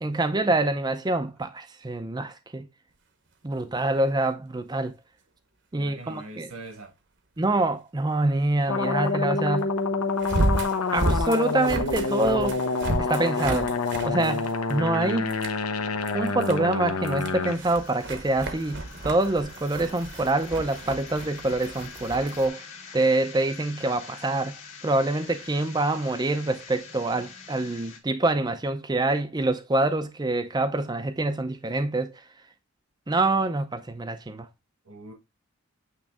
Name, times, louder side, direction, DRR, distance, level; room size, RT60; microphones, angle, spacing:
voice 1, 0.0-2.6 3.4-4.9 5.7-6.5 7.4-9.7 10.9-12.6 13.0-13.7 14.0-15.3 16.1-22.6 22.9-24.6 24.8-32.1 33.1-34.5, right 2 dB, 20° right, 0.5 m, -26 dB
sound 1, 3.7-3.8 10.2-14.9 15.3-15.6 16.1-16.6 17.0-22.5, right 2 dB, 55° right, 1.0 m, -32 dB
voice 2, 5.7-6.9 34.8-35.1, right 2 dB, 75° right, 1.5 m, -43 dB
sound 2, 8.7-17.5, left 4 dB, 90° left, 1.0 m, -27 dB
sound 3, 17.4-28.0, left 5 dB, 60° left, 2.1 m, -45 dB
8.7 x 3.1 x 3.5 m
head